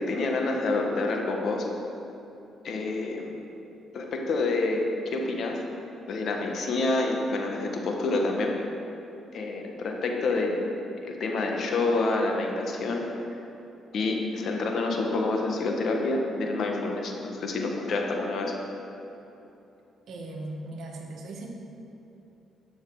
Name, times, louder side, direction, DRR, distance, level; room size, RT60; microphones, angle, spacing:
voice 1, 0.1-1.7 2.6-3.4 3.9-5.5 6.1-8.5 9.3-10.6 11.0-13.0 13.9-18.5, left 3 dB, 60° left, 1 dB, 1.5 m, -28 dB
voice 2, 20.1-21.5, right 2 dB, 70° right, 0 dB, 1.6 m, -38 dB
12.5 x 6.4 x 4.9 m, 3.0 s
cardioid pair, 90°, 0 cm